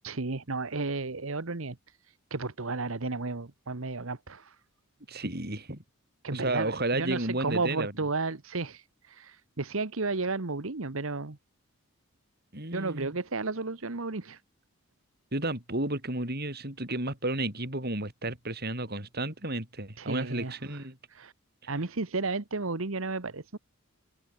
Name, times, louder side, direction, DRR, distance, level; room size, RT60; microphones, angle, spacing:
voice 1, 0.0-1.8 2.3-4.5 6.2-11.4 12.7-14.4 20.0-20.5 21.1-21.3 21.7-23.6, right 3 dB, 65° right, 1.3 m, -33 dB
voice 2, 5.1-5.8 6.3-7.9 12.5-13.2 15.3-21.0 21.6-21.7, right 2 dB, 45° right, 5.8 m, -32 dB
head